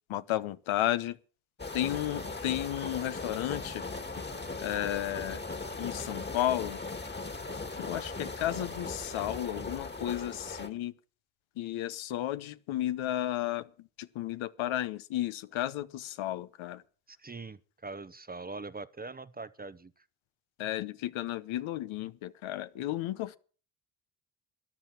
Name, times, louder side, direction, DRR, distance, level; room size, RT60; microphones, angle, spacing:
voice 1, 0.1-1.2 1.7-3.8 4.6-5.4 5.8-6.8 7.8-10.9 11.6-16.8 20.6-23.4, left 13 dB, 70° left, 1.0 m, -33 dB
sound 1, 1.6-10.7, left 3 dB, 20° left, 1.8 m, -38 dB
voice 2, 17.1-19.9, right 3 dB, 20° right, 0.8 m, -42 dB
13.5 x 10.5 x 6.0 m
supercardioid pair, 60°, 50 cm